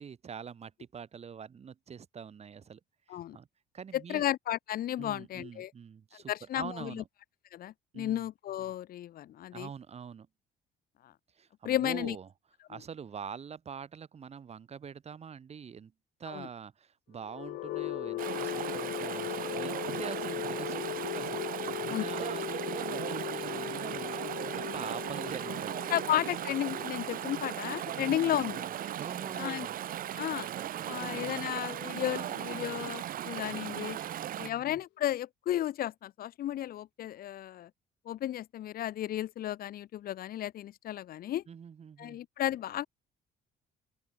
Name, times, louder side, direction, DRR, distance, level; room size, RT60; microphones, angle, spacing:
voice 1, 0.0-2.8 3.1-3.5 3.7-4.2 5.0-7.1 7.9-8.3 9.5-10.3 11.4-12.3 12.7-15.9 16.2-26.0 27.9-28.7 29.0-29.7 30.7-31.5 34.0-34.8 41.5-42.2, right 7 dB, 40° right, 4.0 m, -45 dB
voice 2, 3.9-5.7 6.3-7.0 7.5-9.7 11.0-11.1 11.6-12.2 12.7-12.8 16.3-16.5 21.9-22.1 25.9-28.7 29.3-29.7 30.1-30.5 30.9-34.0 34.3-37.7 38.0-41.4 42.0-42.9, left 12 dB, 60° left, 1.5 m, -33 dB
sound 1, 17.2-31.1, left 17 dB, 80° left, 1.5 m, -39 dB
Chatter / Stream, 18.2-34.5, right 11 dB, 55° right, 1.4 m, -37 dB
open air
cardioid pair, 110°, 17 cm